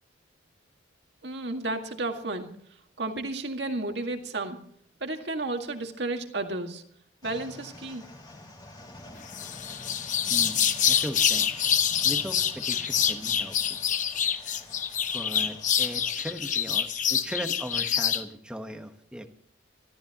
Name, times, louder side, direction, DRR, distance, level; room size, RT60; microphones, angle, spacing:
voice 1, 1.2-2.5 3.0-4.6 5.0-6.8 7.2-8.0, right 2 dB, 60° right, 4 dB, 2.0 m, -32 dB
sound 1, 7.2-16.1, left 1 dB, 20° left, 2.7 m, -48 dB
sound 2, 9.3-18.2, left 8 dB, 40° left, 0.9 m, -26 dB
voice 2, 10.3-10.6 10.9-11.5 12.0-13.8 14.4-14.6 15.1-19.3, equal, 5° right, 6 dB, 1.3 m, -38 dB
25.0 x 13.5 x 3.0 m, 0.64 s
head